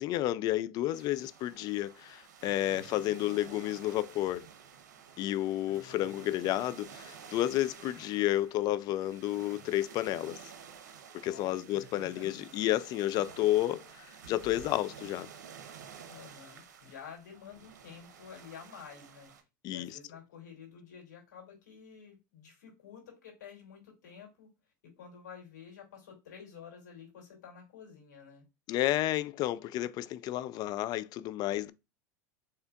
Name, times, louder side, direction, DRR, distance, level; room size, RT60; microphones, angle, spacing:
voice 1, 0.0-4.4 5.2-10.4 11.2-15.3 19.6-19.9 28.7-31.7, left 14 dB, 45° left, 0.3 m, -31 dB
sound 1, 0.9-19.4, right 7 dB, 85° right, 0.7 m, -51 dB
voice 2, 5.7-6.2 11.2-12.4 16.1-19.3 19.7-24.5 24.8-28.4, left 7 dB, 85° left, 2.4 m, -50 dB
4.5 x 3.3 x 2.3 m
hypercardioid pair, 95°, 9 cm